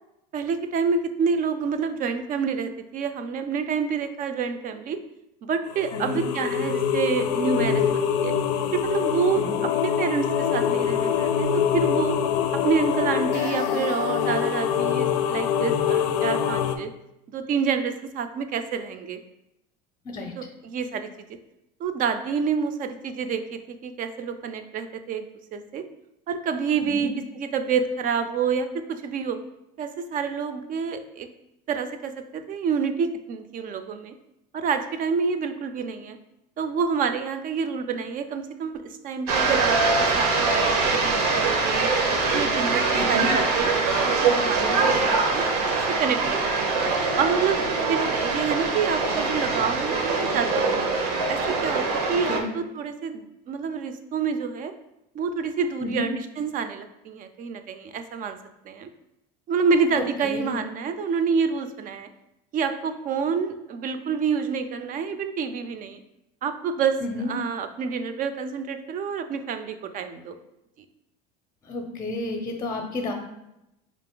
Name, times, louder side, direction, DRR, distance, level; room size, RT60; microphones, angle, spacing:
voice 1, 0.3-5.0 5.4-8.4 8.7-12.2 12.5-16.9 17.3-19.2 20.4-21.3 21.8-25.8 26.3-29.4 29.8-31.3 31.7-34.1 34.5-36.2 36.6-41.9 42.3-45.5 45.9-46.7 47.2-50.9 51.3-54.7 55.1-58.4 58.6-58.9 59.5-62.1 62.5-66.0 66.4-67.0 67.3-70.4, right 6 dB, 40° right, 9 dB, 0.5 m, -28 dB
sound 1, 5.7-16.8, left 8 dB, 80° left, 0.5 m, -24 dB
voice 2, 9.3-9.7 20.0-20.3 26.8-27.1 43.0-43.3 52.3-52.5 55.8-56.1 60.0-60.6 67.0-67.3 71.6-73.1, left 2 dB, 20° left, 3 dB, 0.6 m, -31 dB
sound 2, 39.3-52.4, right 3 dB, 80° right, 0.8 m, -23 dB
4.1 x 2.5 x 3.7 m, 0.88 s
hypercardioid pair, 90°, 21 cm